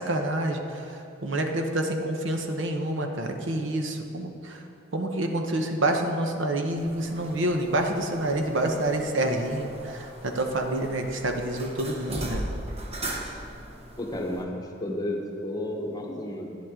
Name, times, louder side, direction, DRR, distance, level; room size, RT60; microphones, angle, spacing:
voice 1, 0.0-4.6 4.9-12.5, right 1 dB, 70° right, 4 dB, 0.9 m, -28 dB
sound 1, 6.8-14.4, right 1 dB, 30° right, 0.9 m, -38 dB
voice 2, 14.0-16.6, left 1 dB, 20° left, 1 dB, 1.0 m, -32 dB
11.0 x 10.5 x 3.7 m, 2.5 s
head